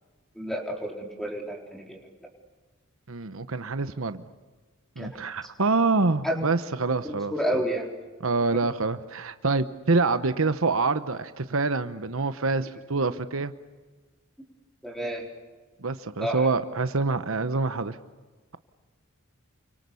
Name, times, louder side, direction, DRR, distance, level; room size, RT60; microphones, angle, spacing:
voice 1, 0.4-2.0 5.0-5.3 6.2-6.4 7.0-7.9 8.5-8.6 14.8-15.3 16.2-16.5, equal, ahead, 1 dB, 4.3 m, -30 dB
voice 2, 3.1-4.2 5.0-7.3 8.2-13.5 15.8-18.0, right 3 dB, 70° right, 11 dB, 1.0 m, -26 dB
29.5 x 24.5 x 7.0 m, 1.3 s
head